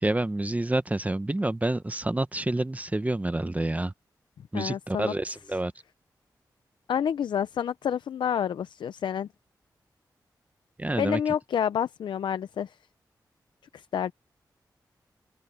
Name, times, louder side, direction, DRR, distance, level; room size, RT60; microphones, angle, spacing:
voice 1, 0.0-3.9 4.5-5.7 10.8-11.2, right 2 dB, 20° right, 1.0 m, -28 dB
voice 2, 4.5-5.1 6.9-9.3 11.0-12.8 13.7-14.1, left 8 dB, 90° left, 0.5 m, -28 dB
open air
cardioid pair, 55°, 8 cm